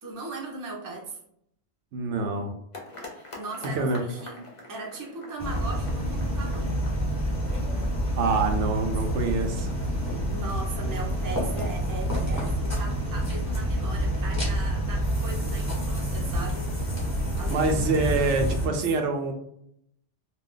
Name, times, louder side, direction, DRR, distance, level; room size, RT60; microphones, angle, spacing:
voice 1, 0.0-1.2 3.1-4.4 4.7-6.8 10.3-16.7 17.4-18.8, right 3 dB, 25° right, -1 dB, 0.4 m, -39 dB
voice 2, 1.9-2.5 3.8-4.0 8.2-9.7 17.5-19.3, right 3 dB, 90° right, 4 dB, 0.9 m, -26 dB
sound 1, 2.7-10.0, left 2 dB, 35° left, 0.6 m, -46 dB
sound 2, 5.4-18.7, equal, 15° left, 0.9 m, -28 dB
2.5 x 2.2 x 3.7 m, 0.72 s
omnidirectional pair, 1.2 m